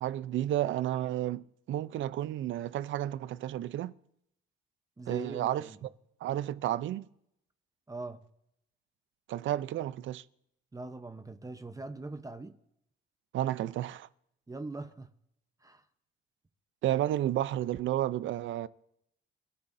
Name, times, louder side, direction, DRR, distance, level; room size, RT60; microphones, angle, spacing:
voice 1, 0.0-3.9 5.1-5.9 6.2-7.0 9.3-10.2 13.3-14.1 16.8-18.7, right 12 dB, 75° right, 0.6 m, -32 dB
voice 2, 5.0-5.8 7.9-8.2 10.7-12.6 14.5-15.1 15.6-15.8, right 2 dB, 15° right, 0.8 m, -41 dB
29.0 x 13.0 x 2.7 m
cardioid pair, 90°, 20 cm